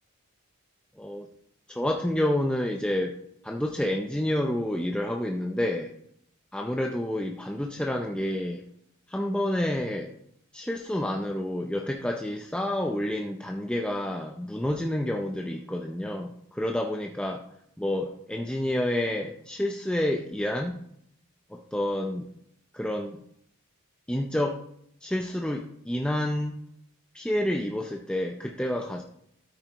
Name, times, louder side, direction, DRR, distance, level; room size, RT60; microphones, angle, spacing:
voice 1, 1.7-3.1 3.4-5.9 6.5-8.6 9.1-10.1 10.5-17.4 17.8-20.8 21.5-22.3 22.7-23.2 24.1-24.6 25.0-26.6 27.1-29.0, left 1 dB, 5° left, 2 dB, 0.5 m, -29 dB
12.5 x 8.7 x 3.0 m, 0.71 s
head